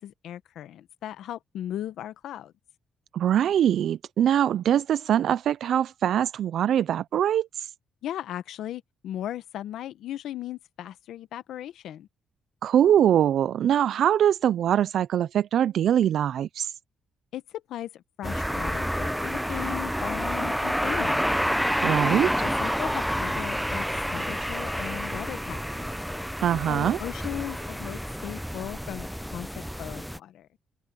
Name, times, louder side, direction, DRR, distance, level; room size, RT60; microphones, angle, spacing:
voice 1, 0.0-2.5 8.0-12.1 17.3-21.3 22.4-25.9 26.7-30.5, left 12 dB, 80° left, 1.2 m, -37 dB
voice 2, 3.1-7.7 12.6-16.8 21.8-22.3 26.4-27.0, right 10 dB, 70° right, 0.4 m, -23 dB
sound 1, 18.2-30.2, equal, ahead, 0.6 m, -29 dB
cardioid pair, 90°, 0 cm